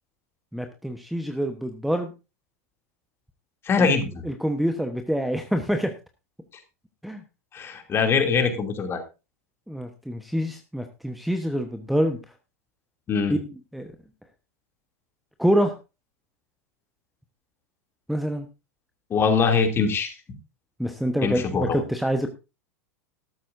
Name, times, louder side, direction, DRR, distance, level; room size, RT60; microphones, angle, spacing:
voice 1, 0.5-2.1 3.8-3.9 4.2-5.9 7.0-7.2 9.7-12.2 13.3-13.4 13.7-13.9 15.4-15.7 18.1-18.5 20.8-22.3, equal, ahead, 7 dB, 1.1 m, -26 dB
voice 2, 3.6-4.2 7.5-9.0 13.1-13.3 19.1-20.1 21.2-21.8, left 5 dB, 30° left, 6 dB, 2.8 m, -23 dB
13.0 x 13.0 x 2.7 m, 0.28 s
figure-of-eight pair, 90°, 9 cm